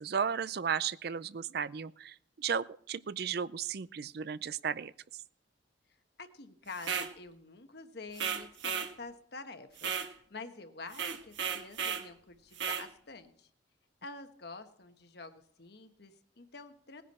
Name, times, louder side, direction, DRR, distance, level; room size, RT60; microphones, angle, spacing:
voice 1, 0.0-5.2, right 7 dB, 55° right, 17 dB, 0.4 m, -35 dB
voice 2, 6.2-13.5 14.0-17.0, left 3 dB, 60° left, 8 dB, 1.3 m, -48 dB
sound 1, 6.8-7.1 8.2-8.9 9.8-10.1 10.9-12.1 12.6-12.9, right 7 dB, 75° right, 1.3 m, -34 dB
19.0 x 10.0 x 4.3 m, 0.64 s
head